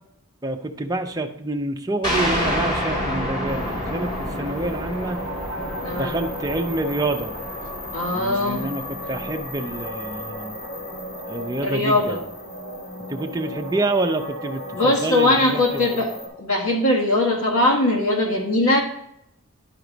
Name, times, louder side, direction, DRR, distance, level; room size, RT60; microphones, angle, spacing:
voice 1, 0.4-5.2 5.9-7.3 8.1-10.6 11.3-12.2 13.1-15.9, right 2 dB, 15° right, 3 dB, 0.6 m, -27 dB
sound 1, 2.0-11.2, equal, 25° left, 3.0 m, -29 dB
sound 2, 3.5-16.3, equal, 65° left, 3.4 m, -35 dB
voice 2, 5.8-6.2 7.9-8.7 11.6-12.2 14.7-16.1 16.4-18.8, left 1 dB, 85° left, 0 dB, 1.7 m, -20 dB
11.0 x 4.8 x 3.9 m, 0.79 s
head